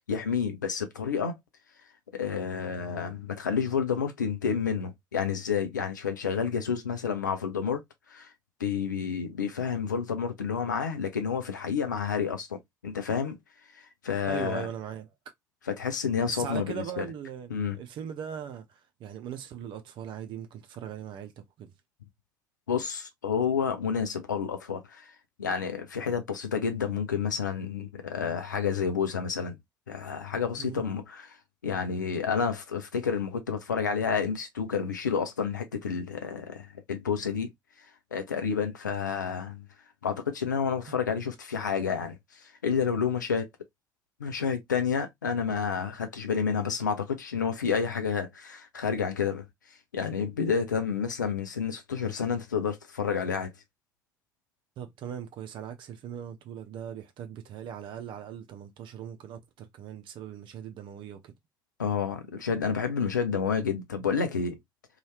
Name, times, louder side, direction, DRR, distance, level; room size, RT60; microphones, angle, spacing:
voice 1, 0.0-1.4 2.1-7.8 8.1-8.3 8.6-13.4 13.7-14.7 15.7-17.1 17.5-17.8 22.7-25.1 25.4-29.6 29.9-31.4 31.6-37.5 38.1-39.7 40.0-43.5 44.2-49.5 49.9-53.5 61.8-64.6, left 6 dB, 85° left, 0.5 m, -30 dB
voice 2, 14.2-15.1 16.3-21.7 30.6-30.8 54.8-61.3, right 9 dB, 55° right, 0.6 m, -39 dB
2.7 x 2.3 x 3.1 m
figure-of-eight pair, 50°, 10 cm